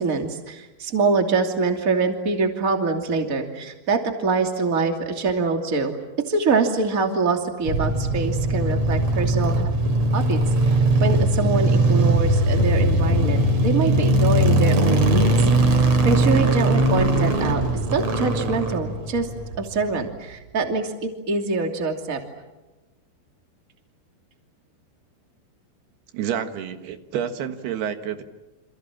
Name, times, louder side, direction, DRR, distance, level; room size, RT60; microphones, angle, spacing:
voice 1, 0.0-5.9 6.3-9.7 10.1-17.6 17.9-19.3 19.6-22.2, right 4 dB, 25° right, 4 dB, 2.6 m, -24 dB
sound 1, 7.7-19.9, right 1 dB, 45° right, 4.2 m, -20 dB
voice 2, 26.1-28.2, right 9 dB, 80° right, 8 dB, 3.6 m, -29 dB
29.0 x 27.0 x 7.4 m, 1.1 s
omnidirectional pair, 4.5 m